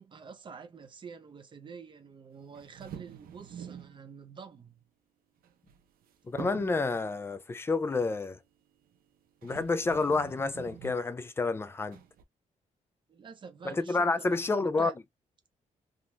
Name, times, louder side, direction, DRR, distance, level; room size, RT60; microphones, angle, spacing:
voice 1, 0.0-4.8 13.1-14.9, right 6 dB, 35° right, 0.7 m, -47 dB
sound 1, 2.5-4.0 5.4-6.0 6.4-6.9 8.9-9.0 9.4-11.1 11.9-12.2, right 9 dB, 85° right, 0.7 m, -46 dB
voice 2, 6.3-8.4 9.4-12.0 13.6-14.9, left 3 dB, 15° left, 0.4 m, -29 dB
3.5 x 2.9 x 2.2 m
wide cardioid pair, 170°, 15 cm